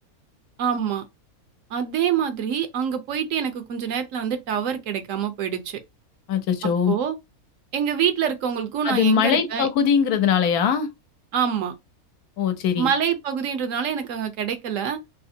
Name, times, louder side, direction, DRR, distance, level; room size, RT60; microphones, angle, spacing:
voice 1, 0.6-1.0 1.7-5.8 6.9-7.1 7.7-9.7 11.3-11.7 12.8-15.0, right 8 dB, 70° right, 0.9 m, -25 dB
voice 2, 6.3-7.0 8.8-10.9 12.4-12.9, left 7 dB, 85° left, 1.2 m, -21 dB
3.3 x 2.8 x 2.7 m
omnidirectional pair, 1.6 m